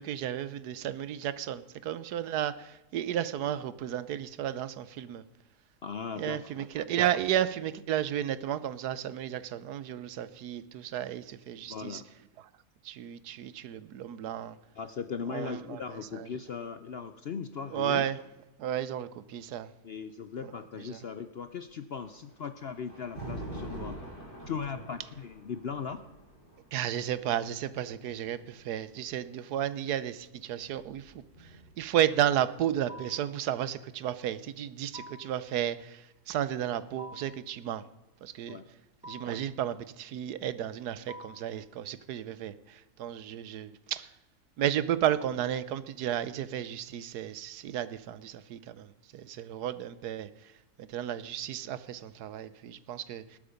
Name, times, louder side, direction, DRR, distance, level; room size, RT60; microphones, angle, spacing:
voice 1, 0.0-5.2 6.2-12.0 12.8-14.6 15.3-15.8 16.1-16.3 17.7-18.2 18.6-19.7 20.9-21.0 26.7-31.5 31.8-37.8 38.2-38.6 39.1-44.1 44.6-50.3 50.8-53.2, right 10 dB, 80° right, 16 dB, 1.3 m, -33 dB
voice 2, 5.8-6.4 11.6-12.0 14.7-18.0 19.8-24.0 24.5-26.0 38.5-38.7, left 6 dB, 60° left, 11 dB, 0.7 m, -38 dB
Thunder, 21.9-29.1 30.2-31.9, right 1 dB, 30° left, 3.9 m, -45 dB
sound 1, 32.9-33.4 34.9-35.4 37.0-37.5 39.0-39.5 41.1-41.6, left 1 dB, 5° right, 0.5 m, -47 dB
19.5 x 8.8 x 5.2 m, 0.98 s
omnidirectional pair, 1.7 m